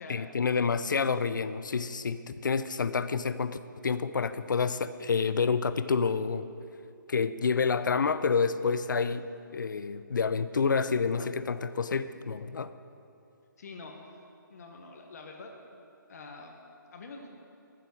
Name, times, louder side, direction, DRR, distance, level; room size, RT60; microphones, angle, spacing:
voice 1, 0.1-6.5 7.1-9.3 9.5-12.7, left 5 dB, 70° left, 13 dB, 0.6 m, -28 dB
voice 2, 13.6-14.2 14.5-15.5 16.1-16.6 16.9-17.3, left 3 dB, 50° left, 2 dB, 1.4 m, -45 dB
13.5 x 7.6 x 6.4 m, 2.6 s
figure-of-eight pair, 150°, 11 cm